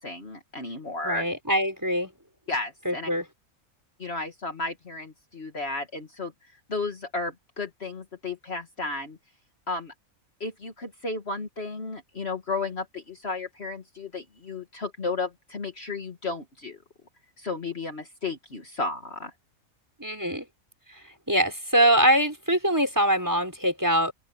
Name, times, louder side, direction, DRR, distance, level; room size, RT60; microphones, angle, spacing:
voice 1, 0.0-1.2 2.5-3.1 4.0-6.3 6.7-9.2 9.7-9.9 10.4-16.8 17.4-19.3, left 3 dB, 50° left, 2.1 m, -33 dB
voice 2, 1.0-2.1 2.9-3.2 20.0-20.5 21.3-24.1, right 1 dB, 15° right, 5.3 m, -23 dB
open air
omnidirectional pair, 1.4 m